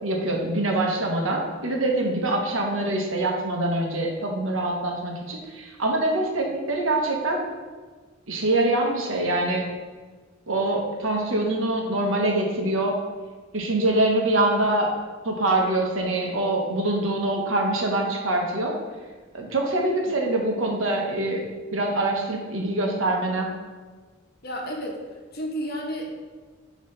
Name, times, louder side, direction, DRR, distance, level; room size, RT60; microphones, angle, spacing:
voice 1, 0.0-7.5 8.3-9.7 10.5-13.0 13.5-14.9 15.2-18.7 19.3-21.4 21.7-23.5, right 2 dB, 85° right, 1 dB, 1.1 m, -24 dB
voice 2, 24.4-25.0 25.3-26.1, equal, 50° left, 0 dB, 1.0 m, -31 dB
9.5 x 3.2 x 3.3 m, 1.4 s
head